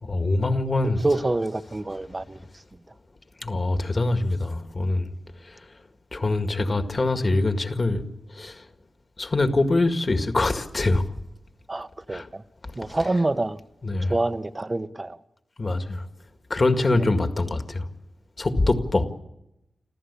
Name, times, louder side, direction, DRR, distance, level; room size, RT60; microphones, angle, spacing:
voice 1, 0.0-1.0 3.4-5.1 5.4-5.7 6.1-8.7 9.2-11.1 12.1-12.3 12.6-13.0 13.8-14.1 15.6-16.1 16.5-17.9 18.4-19.1, left 2 dB, 35° left, 1.9 m, -24 dB
voice 2, 0.8-2.5 11.7-12.4 12.8-13.6 14.0-15.2 17.0-17.1, right 2 dB, 25° right, 0.9 m, -27 dB
26.5 x 15.0 x 8.4 m
wide cardioid pair, 115°, 0 cm